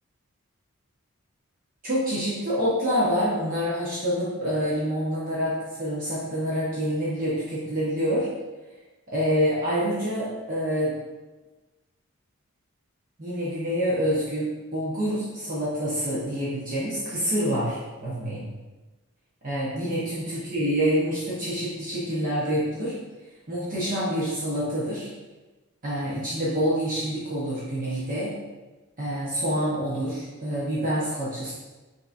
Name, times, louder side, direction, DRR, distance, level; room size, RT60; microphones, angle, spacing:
voice 1, 1.8-8.3 9.1-11.0 13.2-18.5 19.4-23.0 23.5-25.1 25.8-28.3 29.0-31.5, equal, 40° right, -9 dB, 0.9 m, -27 dB
5.8 x 2.8 x 2.5 m, 1.2 s
head